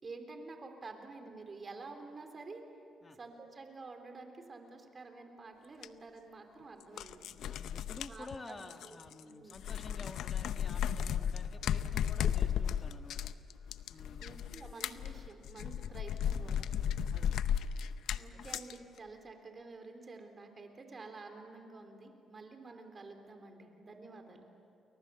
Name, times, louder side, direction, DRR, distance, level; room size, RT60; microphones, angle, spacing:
voice 1, 0.0-2.6 3.1-7.3 8.0-8.5 8.8-9.6 14.2-16.7 18.1-24.5, right 3 dB, 35° right, 5 dB, 3.7 m, -49 dB
sound 1, 5.8-5.9 6.8-9.2 9.5-18.7, left 9 dB, 75° left, 0.7 m, -35 dB
voice 2, 7.5-13.3 13.9-14.3 17.1-17.5 18.3-18.4, left 3 dB, 30° left, 6 dB, 1.8 m, -51 dB
30.0 x 22.0 x 7.1 m, 2.6 s
cardioid pair, 90°, 0 cm